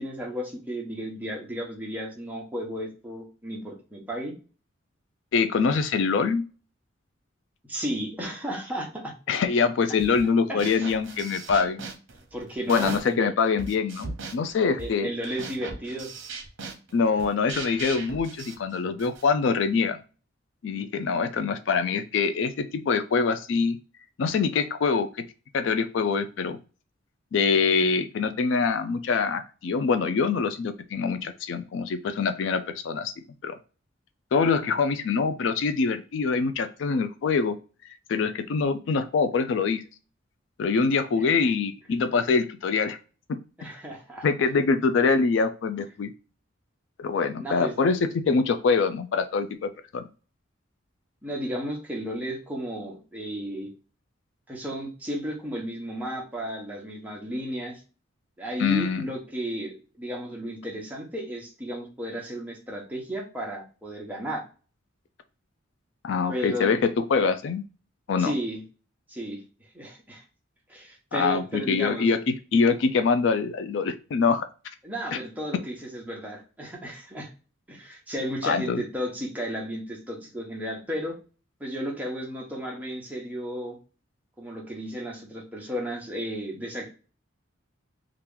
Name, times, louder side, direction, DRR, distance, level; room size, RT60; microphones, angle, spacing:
voice 1, 0.0-4.3 7.7-9.1 10.5-10.9 12.3-13.3 14.8-16.1 41.1-41.3 43.6-44.3 47.4-48.4 51.2-53.7 54.5-57.8 58.4-64.4 66.3-66.7 68.2-68.6 69.1-69.4 69.7-70.2 70.7-72.1 74.8-77.3 77.7-81.2 81.6-83.8 84.4-86.9, equal, 10° right, -2 dB, 0.9 m, -34 dB
voice 2, 5.3-6.4 9.3-11.8 12.7-15.1 16.9-20.0 20.6-23.8 24.2-25.1 25.5-26.6 27.3-33.1 33.4-33.6 34.3-37.6 38.1-39.8 40.6-43.0 44.2-46.1 47.0-50.1 58.6-59.1 66.0-66.8 67.1-67.6 68.1-68.3 71.1-74.5 75.1-75.2 78.4-78.8, left 5 dB, 65° left, 10 dB, 0.3 m, -24 dB
sound 1, 10.0-10.3 10.6-13.2 13.6-19.3, right 4 dB, 65° right, 0.8 m, -39 dB
2.9 x 2.4 x 3.5 m, 0.35 s
head